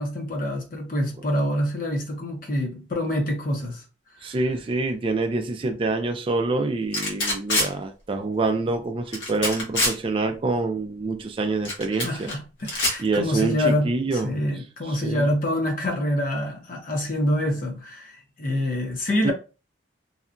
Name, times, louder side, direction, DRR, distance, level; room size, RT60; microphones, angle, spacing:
voice 1, 0.0-3.8 4.2-4.3 11.9-19.3, left 1 dB, 50° left, 0.7 m, -26 dB
voice 2, 4.2-12.3 13.0-14.3 14.9-15.3 19.2-19.3, right 3 dB, 30° right, 0.3 m, -26 dB
sound 1, 6.9-7.7 9.1-10.0 11.7-12.3 12.6-13.0, left 1 dB, 85° left, 1.0 m, -24 dB
2.7 x 2.2 x 2.5 m
head